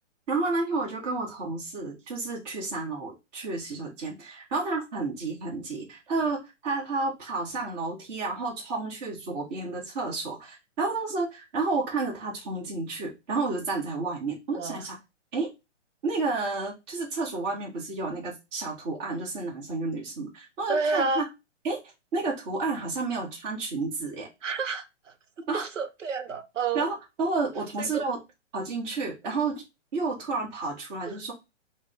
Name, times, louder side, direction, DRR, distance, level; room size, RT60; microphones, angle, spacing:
voice 1, 0.3-15.0 15.3-15.5 16.0-21.3 21.6-21.8 22.1-24.3 25.5-25.6 26.7-28.2 28.5-29.6 29.9-31.3, right 3 dB, 35° right, 1.4 m, -31 dB
voice 2, 20.7-21.3 24.4-25.1 25.5-26.9 27.8-28.0 31.1-31.2, right 4 dB, 90° right, 0.9 m, -30 dB
5.0 x 2.2 x 3.6 m
hypercardioid pair, 145°, 36 cm